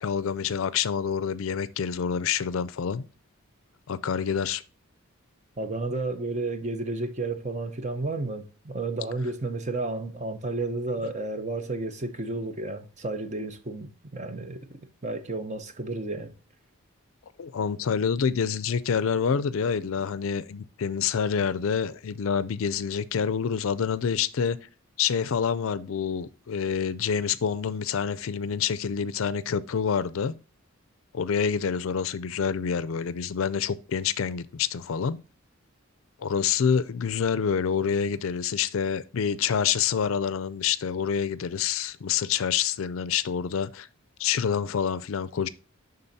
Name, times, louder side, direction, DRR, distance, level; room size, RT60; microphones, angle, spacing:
voice 1, 0.0-3.0 3.9-4.6 17.4-24.6 25.0-30.3 31.1-35.2 36.2-43.9 44.2-45.5, left 7 dB, 65° left, 0.4 m, -27 dB
voice 2, 5.6-14.8 15.0-16.3, right 2 dB, 35° right, 0.7 m, -32 dB
11.0 x 3.8 x 2.7 m
head